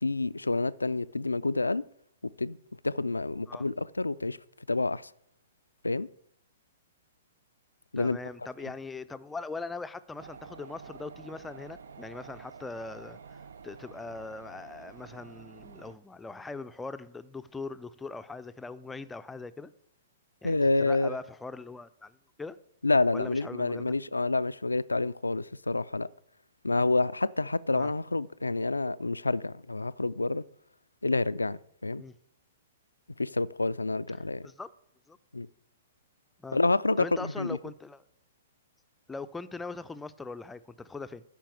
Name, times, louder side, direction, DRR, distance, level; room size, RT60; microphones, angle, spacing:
voice 1, 0.0-1.8 2.4-2.6 2.8-4.4 4.7-5.1 5.8-6.1 7.9-8.2 8.6-8.7 20.4-21.2 22.8-26.1 26.6-30.4 31.0-32.0 33.2-34.5 35.3-35.5 36.5-37.6, left 3 dB, 85° left, 0.3 m, -28 dB
voice 2, 8.0-19.7 20.4-22.6 23.1-23.9 27.7-27.9 32.0-32.2 34.4-34.7 35.1-35.2 36.4-36.6 37.0-38.0 39.1-41.2, left 3 dB, 10° left, 0.5 m, -41 dB
sound 1, 10.2-16.0, right 6 dB, 70° right, 0.5 m, -49 dB
10.0 x 5.2 x 8.2 m
figure-of-eight pair, 115°, 0 cm